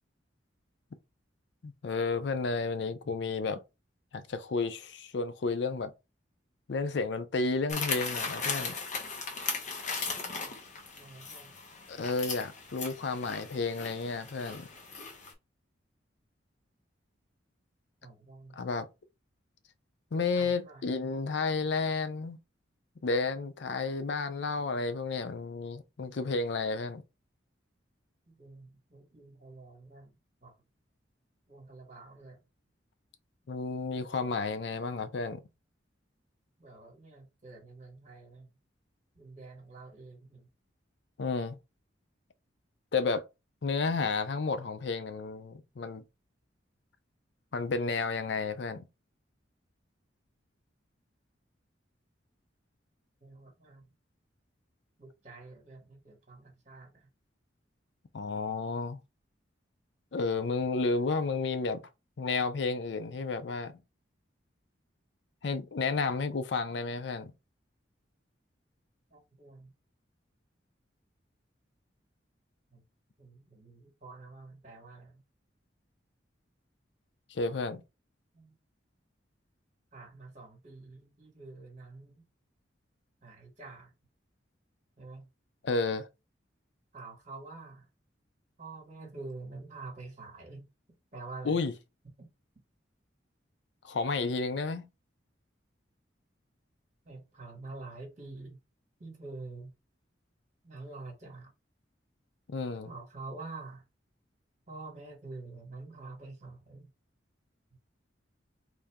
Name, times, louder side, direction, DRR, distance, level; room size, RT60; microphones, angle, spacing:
voice 1, 1.6-3.6 4.1-5.9 6.7-8.8 11.9-14.7 18.6-18.9 20.1-22.4 23.0-27.0 33.5-35.4 41.2-41.6 42.9-43.3 43.6-46.0 47.5-48.8 58.1-59.0 60.1-61.8 62.2-63.8 65.4-67.3 77.3-77.8 85.6-86.1 91.4-91.7 93.8-94.9 102.5-102.9, left 4 dB, 65° left, 0.5 m, -31 dB
sound 1, 7.7-15.3, left 4 dB, 40° left, 0.9 m, -37 dB
voice 2, 11.0-11.5 18.0-18.6 20.1-20.8 28.3-30.1 30.4-30.5 31.5-32.4 36.6-38.5 39.1-40.5 53.2-53.8 55.0-57.1 69.1-69.7 72.7-72.8 73.2-75.2 78.3-78.5 79.9-82.2 83.2-83.9 85.0-85.3 86.9-87.9 88.6-90.6 91.1-91.6 92.2-92.3 97.0-98.6 99.0-99.7 100.6-101.5 102.8-103.8 104.7-106.9, right 3 dB, 40° right, 1.5 m, -47 dB
3.4 x 2.7 x 3.5 m
head